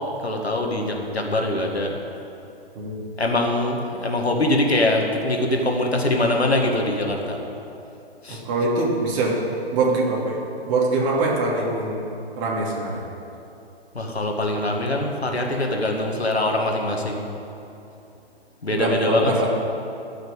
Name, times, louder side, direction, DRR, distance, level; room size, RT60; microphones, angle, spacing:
voice 1, 0.2-1.9 3.2-7.4 8.2-8.4 13.9-17.2 18.6-19.3, left 1 dB, 85° left, 1 dB, 2.2 m, -23 dB
voice 2, 2.7-3.0 8.3-9.4 9.7-12.0 12.4-13.0 18.7-19.5, right 2 dB, 30° right, -3 dB, 3.0 m, -23 dB
15.0 x 6.5 x 9.1 m, 2.7 s
figure-of-eight pair, 130°, 31 cm